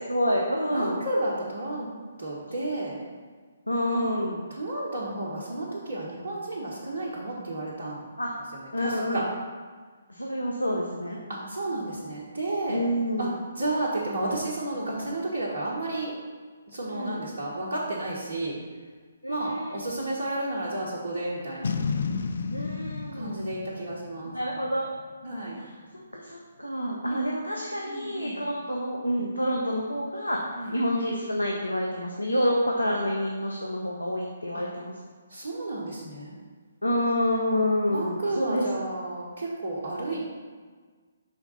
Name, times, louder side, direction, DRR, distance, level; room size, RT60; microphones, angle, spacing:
voice 1, 0.1-1.0 3.7-4.4 8.2-8.3 8.7-9.3 10.1-11.2 12.7-13.4 16.9-17.2 19.2-19.8 22.5-23.4 24.2-24.9 25.5-34.9 36.8-38.9, equal, 85° left, -1 dB, 0.7 m, -28 dB
voice 2, 0.7-1.9 2.2-3.0 4.6-8.0 8.5-9.2 11.3-12.8 13.2-13.3 13.6-16.1 16.7-18.6 19.3-21.7 23.1-24.3 25.2-25.6 27.9-28.4 30.6-30.7 34.5-34.6 35.3-36.4 37.9-40.3, right 2 dB, 55° right, -7 dB, 1.1 m, -32 dB
Boom, 21.6-25.0, left 5 dB, 55° left, 0.4 m, -32 dB
5.7 x 3.5 x 5.6 m, 1.5 s
figure-of-eight pair, 135°, 0 cm